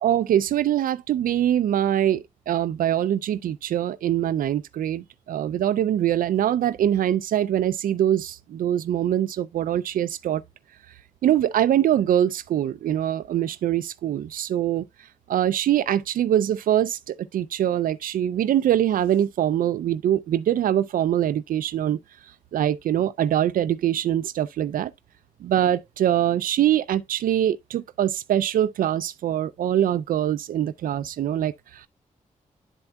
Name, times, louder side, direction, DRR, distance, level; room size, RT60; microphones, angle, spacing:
voice 1, 0.0-10.4 11.2-14.9 15.3-22.0 22.5-24.9 25.4-31.9, right 11 dB, 80° right, 0.4 m, -23 dB
11.0 x 4.4 x 2.2 m
cardioid pair, 85°, 14 cm